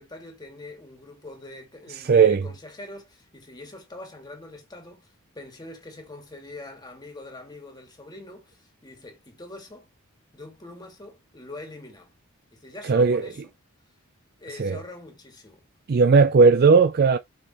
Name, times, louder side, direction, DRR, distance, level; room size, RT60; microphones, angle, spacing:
voice 1, 0.0-9.9 10.3-12.1 12.5-13.4 14.4-15.6, left 2 dB, 20° left, 1.9 m, -43 dB
voice 2, 2.1-2.4 12.9-13.2 14.6-14.8 15.9-17.2, right 5 dB, 45° right, 0.4 m, -16 dB
6.3 x 5.3 x 3.0 m
head